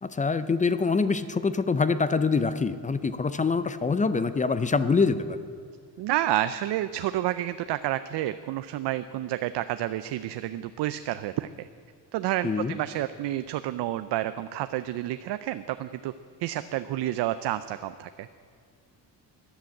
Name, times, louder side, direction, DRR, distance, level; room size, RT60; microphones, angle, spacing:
voice 1, 0.0-5.4 12.4-12.8, left 4 dB, 20° left, 13 dB, 0.5 m, -25 dB
voice 2, 6.0-11.7 12.1-16.1 16.4-18.3, right 13 dB, 80° right, 12 dB, 0.6 m, -30 dB
14.0 x 10.5 x 8.4 m, 2.2 s
cardioid pair, 150°, 41 cm